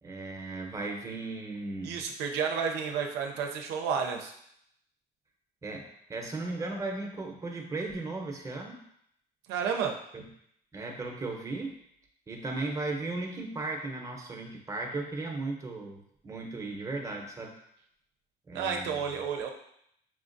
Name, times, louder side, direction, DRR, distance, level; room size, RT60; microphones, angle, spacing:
voice 1, 0.0-2.0 5.6-8.8 10.1-10.2 10.7-11.8 12.3-17.6 18.5-19.2, right 3 dB, 20° right, 1 dB, 0.7 m, -36 dB
voice 2, 1.8-4.3 9.5-9.9 18.5-19.5, right 6 dB, 85° right, 2 dB, 0.5 m, -31 dB
5.7 x 2.4 x 2.6 m, 0.72 s
cardioid pair, 110°, 17 cm